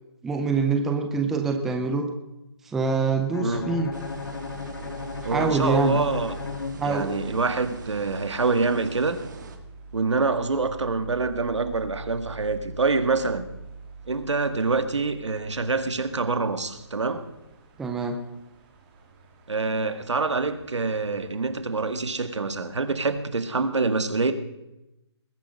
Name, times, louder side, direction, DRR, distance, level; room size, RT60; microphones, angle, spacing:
voice 1, 0.2-2.1 2.7-3.9 5.2-6.0 6.8-7.1 17.8-18.2, right 4 dB, ahead, 4 dB, 0.4 m, -25 dB
Bowed string instrument, 3.3-7.4, left 6 dB, 55° left, 0.9 m, -36 dB
sound 1, 3.4-23.3, right 4 dB, 20° right, 2.5 m, -44 dB
sound 2, 3.9-9.6, right 4 dB, 40° right, 2.1 m, -43 dB
voice 2, 5.3-6.3 6.8-9.2 9.9-13.4 14.1-17.2 19.5-24.3, right 3 dB, 90° right, 10 dB, 2.0 m, -26 dB
20.5 x 9.7 x 6.2 m, 0.93 s
hypercardioid pair, 165°, 15 cm